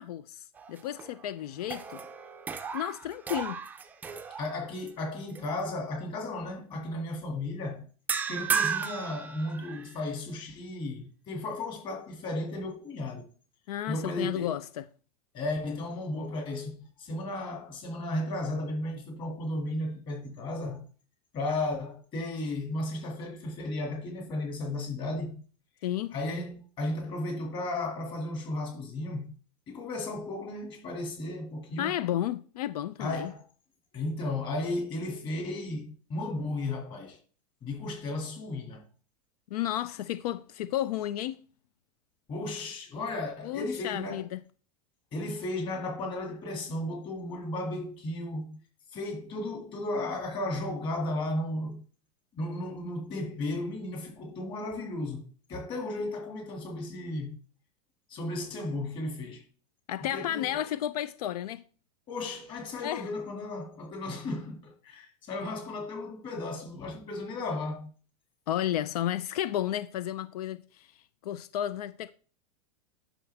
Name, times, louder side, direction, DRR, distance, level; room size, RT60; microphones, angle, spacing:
voice 1, 0.0-2.0 2.7-3.6 13.7-14.8 25.8-26.1 31.8-33.3 39.5-41.4 43.4-44.4 59.9-61.6 62.8-63.1 68.5-70.9 71.2-72.1, left 12 dB, 85° left, 0.5 m, -32 dB
sound 1, 0.5-1.2 1.6-4.9 5.3-5.6 8.1-10.0, right 6 dB, 10° right, 0.4 m, -34 dB
voice 2, 4.4-7.8 8.3-13.3 13.9-14.6 15.3-20.8 21.3-25.4 26.1-29.3 29.7-31.9 33.0-33.4 33.9-37.2 37.6-38.9 42.3-44.2 45.1-48.6 48.9-51.8 52.3-57.4 58.1-59.4 60.1-60.5 62.1-67.9, left 2 dB, 25° left, 2.2 m, -34 dB
9.9 x 6.2 x 3.4 m
supercardioid pair, 165°, 19 cm